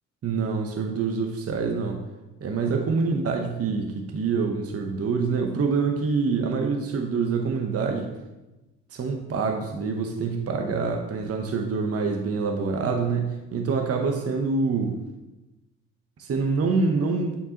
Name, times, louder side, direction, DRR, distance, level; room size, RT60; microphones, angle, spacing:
voice 1, 0.2-2.0 2.4-8.1 8.9-15.0 16.2-17.4, right 4 dB, 40° right, 3 dB, 0.8 m, -26 dB
8.4 x 4.6 x 2.8 m, 1.0 s
hypercardioid pair, 50°, 35 cm